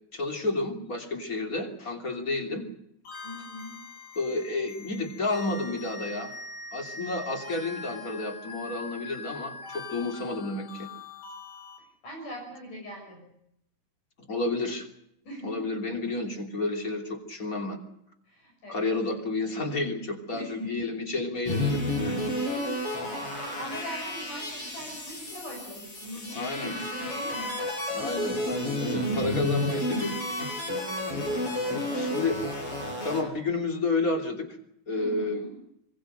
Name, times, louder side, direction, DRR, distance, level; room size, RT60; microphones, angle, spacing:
voice 1, 0.1-2.6 4.1-6.3 6.7-10.9 14.3-14.9 15.4-17.8 18.7-22.2 26.3-26.7 27.9-30.5 31.9-32.4 33.0-34.5 34.9-35.4, left 2 dB, 25° left, 4 dB, 3.2 m, -31 dB
sound 1, 3.1-11.8, left 3 dB, 80° left, 6.4 m, -42 dB
voice 2, 3.2-3.8 11.8-13.3 15.2-15.7 18.2-18.9 20.3-21.0 22.4-27.6 31.1-32.1 35.0-35.5, equal, 65° left, 0 dB, 8.1 m, -41 dB
sound 2, 21.5-33.2, left 1 dB, 40° left, 7.4 m, -31 dB
26.0 x 21.5 x 6.7 m, 0.77 s
omnidirectional pair, 3.9 m